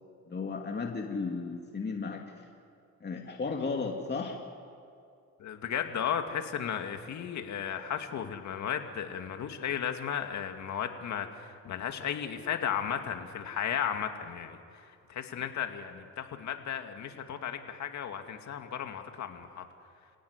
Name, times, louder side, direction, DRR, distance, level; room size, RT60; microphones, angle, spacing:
voice 1, 0.3-2.2 3.0-4.4, left 4 dB, 35° left, 1 dB, 2.6 m, -34 dB
voice 2, 5.4-19.6, left 8 dB, 65° left, 5 dB, 2.3 m, -35 dB
29.5 x 17.0 x 9.8 m, 2.4 s
cardioid pair, 90°, 30 cm